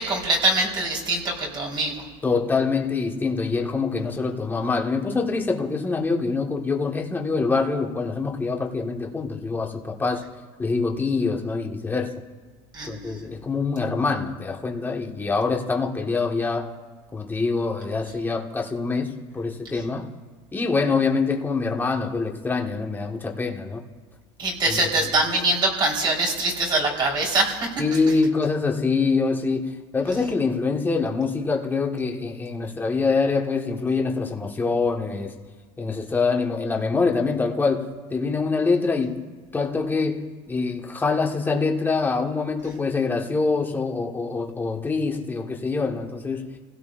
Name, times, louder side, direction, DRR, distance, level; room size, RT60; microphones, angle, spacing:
voice 1, 0.0-1.9 12.7-13.2 24.4-27.7, right 2 dB, 35° right, -1 dB, 4.2 m, -23 dB
voice 2, 2.2-10.2 10.6-12.2 12.8-16.7 17.1-20.1 20.5-23.8 24.6-24.8 27.8-35.3 35.8-39.2 39.5-46.5, left 4 dB, 15° left, 1 dB, 1.6 m, -25 dB
30.0 x 16.5 x 2.6 m, 1.4 s
supercardioid pair, 125°, 13 cm